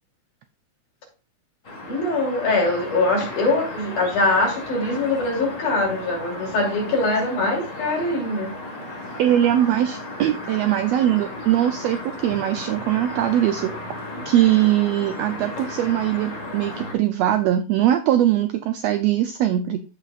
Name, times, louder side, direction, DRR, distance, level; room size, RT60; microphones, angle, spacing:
sound 1, 1.6-16.9, left 2 dB, 40° left, 1.2 m, -35 dB
voice 1, 1.9-8.5, left 2 dB, 80° left, -2 dB, 4.5 m, -22 dB
voice 2, 9.2-13.7 14.2-19.8, right 12 dB, 80° right, 9 dB, 1.5 m, -21 dB
14.5 x 4.8 x 2.4 m, 0.32 s
omnidirectional pair, 3.5 m